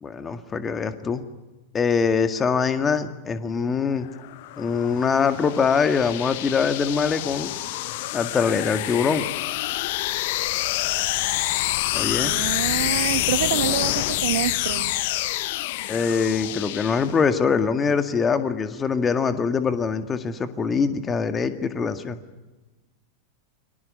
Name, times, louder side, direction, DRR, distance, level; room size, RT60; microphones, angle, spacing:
voice 1, 0.0-1.2 1.7-4.1 4.6-7.5 8.1-9.2 11.9-12.3 15.9-22.2, left 5 dB, 20° left, 9 dB, 2.0 m, -23 dB
sound 1, 4.0-17.4, left 16 dB, 50° left, 0.9 m, -27 dB
voice 2, 12.2-14.9, right 13 dB, 55° right, 13 dB, 1.2 m, -27 dB
29.5 x 25.0 x 6.6 m, 1.1 s
figure-of-eight pair, 90°, 0 cm